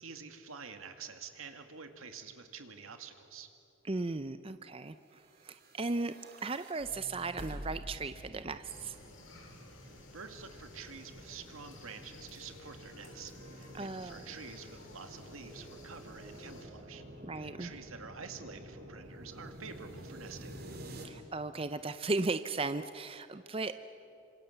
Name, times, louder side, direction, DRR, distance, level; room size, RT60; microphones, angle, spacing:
voice 1, 0.0-3.5 9.9-17.0 17.3-20.5, right 5 dB, 85° right, 7 dB, 2.2 m, -48 dB
voice 2, 3.8-6.1 6.4-9.0 13.7-14.2 17.2-17.7 21.0-23.8, right 3 dB, 25° right, 11 dB, 0.5 m, -36 dB
sound 1, 5.3-21.0, equal, 45° right, 3.2 m, -49 dB
sound 2, 8.7-16.6, left 2 dB, 70° left, 5.3 m, -55 dB
27.5 x 26.5 x 8.0 m, 2.9 s
head